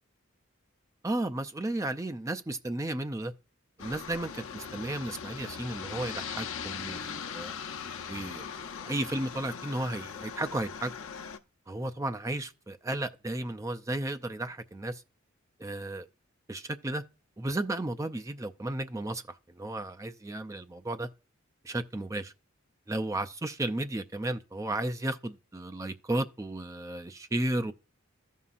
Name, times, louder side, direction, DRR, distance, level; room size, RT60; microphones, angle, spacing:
voice 1, 1.0-3.3 3.8-7.6 8.1-8.5 8.7-10.9 11.7-15.0 15.6-16.1 16.5-17.0 17.4-21.1 21.6-22.3 22.9-27.7, right 1 dB, 15° right, 0.4 m, -34 dB
Aircraft, 3.8-11.4, left 7 dB, 70° left, 0.6 m, -40 dB
14.0 x 5.5 x 2.5 m
head